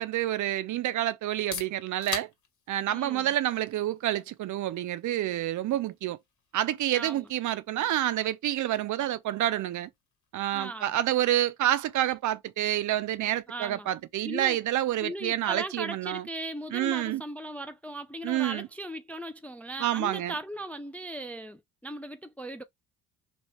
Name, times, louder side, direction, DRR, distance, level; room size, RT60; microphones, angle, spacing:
voice 1, 0.0-2.3 2.7-6.2 6.5-9.9 10.3-16.3 16.7-17.2 18.2-18.7 19.8-20.3, right 13 dB, 50° right, 0.5 m, -28 dB
sound 1, 1.2-16.9, left 6 dB, 50° left, 1.3 m, -48 dB
voice 2, 2.9-3.3 6.9-7.2 10.5-11.0 13.5-13.9 14.2-14.6 15.0-22.6, right 1 dB, 5° left, 0.3 m, -38 dB
2.9 x 2.8 x 3.0 m
supercardioid pair, 65°, 39 cm